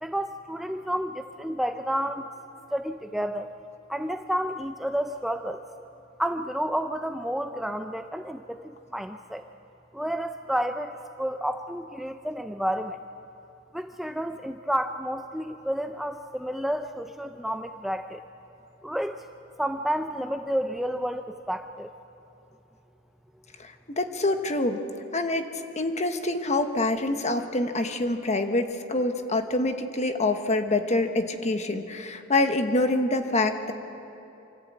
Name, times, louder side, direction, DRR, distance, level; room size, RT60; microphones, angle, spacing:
voice 1, 0.0-2.3 2.7-3.5 3.9-5.6 6.2-9.4 9.9-13.0 13.7-18.2 18.8-19.2 19.6-21.9, equal, ahead, 7 dB, 0.4 m, -30 dB
voice 2, 24.0-24.8 25.1-25.4 25.8-33.7, left 2 dB, 35° left, 7 dB, 1.3 m, -26 dB
25.5 x 14.5 x 8.5 m, 2.9 s
head